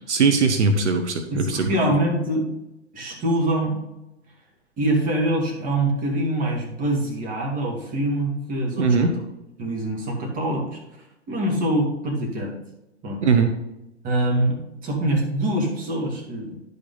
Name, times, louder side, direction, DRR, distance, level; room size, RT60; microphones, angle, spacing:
voice 1, 0.1-1.7 8.8-9.1 13.2-13.5, right 4 dB, 85° right, 7 dB, 1.0 m, -20 dB
voice 2, 1.3-2.5 2.9-3.8 4.8-9.1 9.6-10.8 11.3-12.5 13.0-13.2 14.0-16.6, right 1 dB, 25° right, -1 dB, 2.4 m, -24 dB
10.5 x 5.4 x 4.0 m, 0.92 s
hypercardioid pair, 120°, 34 cm